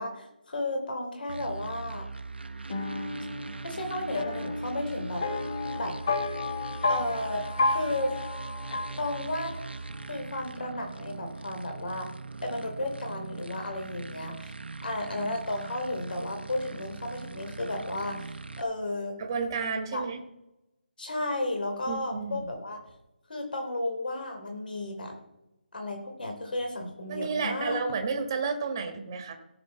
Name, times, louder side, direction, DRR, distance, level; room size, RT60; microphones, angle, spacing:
voice 1, 0.0-2.1 3.6-5.3 5.7-6.0 6.9-8.1 9.0-9.7 10.1-12.1 12.4-14.5 14.8-19.2 19.9-20.1 21.0-22.8 23.3-25.2 25.7-27.8, left 1 dB, 60° left, 3 dB, 3.4 m, -33 dB
sound 1, 1.3-18.6, right 4 dB, 85° right, 0.9 m, -41 dB
sound 2, 2.7-9.7, left 3 dB, 30° left, 1.4 m, -32 dB
voice 2, 19.2-20.2 21.9-22.5 27.1-29.3, right 5 dB, 20° right, 5 dB, 1.4 m, -31 dB
17.5 x 6.8 x 4.3 m, 0.93 s
figure-of-eight pair, 170°, 6 cm